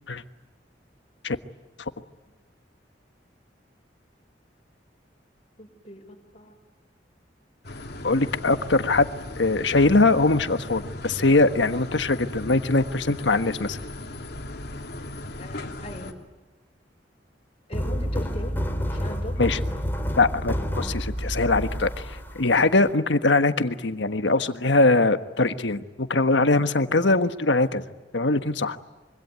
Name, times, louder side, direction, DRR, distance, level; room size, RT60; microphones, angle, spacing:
voice 1, 5.6-6.6 15.4-16.1 17.7-18.6 18.9-19.4, equal, 35° left, 1 dB, 5.7 m, -39 dB
sound 1, 7.6-16.1, left 1 dB, 65° left, 2.8 m, -37 dB
voice 2, 8.0-9.1 9.4-13.8 19.4-19.6 20.1-22.0 22.3-27.8 28.1-28.8, left 3 dB, 90° left, 10 dB, 1.4 m, -22 dB
sound 2, 17.7-22.9, equal, 10° left, 3.0 m, -29 dB
25.5 x 25.0 x 9.4 m, 1.1 s
head